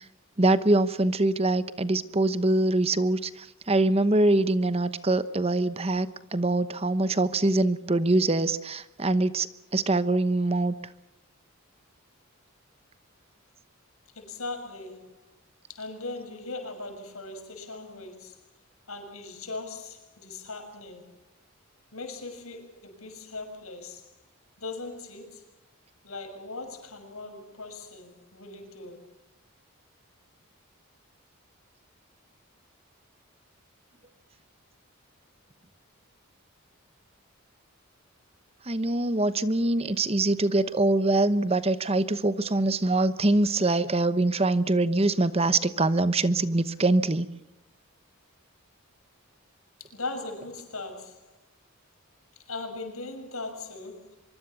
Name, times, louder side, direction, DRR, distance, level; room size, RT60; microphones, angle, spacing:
voice 1, 0.4-6.1 6.3-9.5 9.7-10.7 38.7-47.3, right 2 dB, 25° right, 13 dB, 1.0 m, -24 dB
voice 2, 14.1-15.2 15.7-18.4 18.9-21.1 21.9-24.1 24.6-25.5 26.0-29.0 49.8-51.3 52.5-54.2, left 3 dB, 80° left, 6 dB, 6.5 m, -39 dB
24.5 x 23.0 x 7.1 m, 0.85 s
head